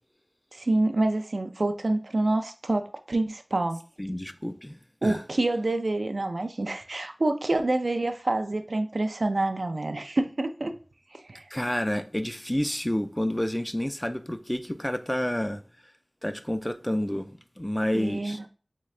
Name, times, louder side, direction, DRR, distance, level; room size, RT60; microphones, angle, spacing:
voice 1, 0.5-3.8 5.0-10.8 11.1-11.4 17.9-18.5, right 2 dB, 75° right, 0.4 m, -27 dB
voice 2, 4.0-5.2 11.5-15.6 16.2-17.3 17.6-18.4, left 1 dB, 15° left, 0.3 m, -29 dB
3.7 x 3.3 x 3.2 m
wide cardioid pair, 55°, 0 cm